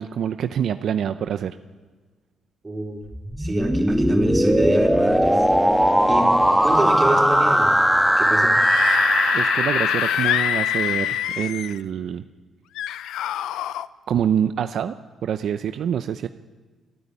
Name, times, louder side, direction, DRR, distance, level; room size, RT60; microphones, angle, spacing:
voice 1, 0.0-1.6 9.3-12.2 14.1-14.9 15.2-16.3, right 9 dB, 65° right, 10 dB, 0.7 m, -25 dB
voice 2, 2.6-3.0 3.4-5.5 6.0-6.3 6.6-7.8 8.2-8.6, right 1 dB, 20° right, 1 dB, 4.1 m, -27 dB
sound 1, 3.1-11.1, equal, ahead, 1.4 m, -19 dB
Screaming / Screech, 8.4-11.8 12.8-13.9, left 11 dB, 85° left, 0.6 m, -25 dB
28.0 x 9.5 x 10.0 m, 1.3 s
cardioid pair, 90°, 0 cm